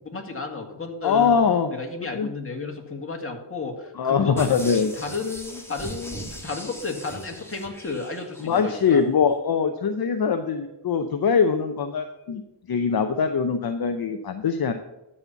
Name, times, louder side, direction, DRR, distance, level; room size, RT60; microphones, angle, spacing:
voice 1, 0.1-1.4 1.7-9.0, left 4 dB, 30° left, 2 dB, 2.1 m, -33 dB
voice 2, 1.0-1.8 2.1-2.3 4.0-4.9 8.4-12.4 12.7-14.7, left 6 dB, 55° left, 7 dB, 0.8 m, -22 dB
sound 1, 4.4-8.8 9.2-9.3, equal, 5° left, 1.6 m, -40 dB
13.0 x 4.3 x 6.9 m, 0.96 s
cardioid pair, 80°, 43 cm